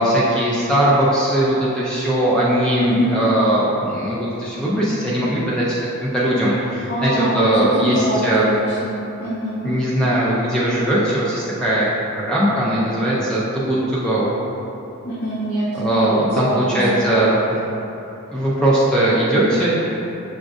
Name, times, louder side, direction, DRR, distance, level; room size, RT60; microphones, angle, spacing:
voice 1, 0.0-8.5 9.6-11.9 12.2-14.3 15.7-17.3 18.3-19.9, right 1 dB, 5° left, -8 dB, 0.3 m, -19 dB
voice 2, 2.8-3.2 6.9-9.6 15.0-16.8 17.1-17.3, right 1 dB, 85° left, -14 dB, 1.1 m, -23 dB
6.0 x 2.5 x 2.3 m, 2.9 s
head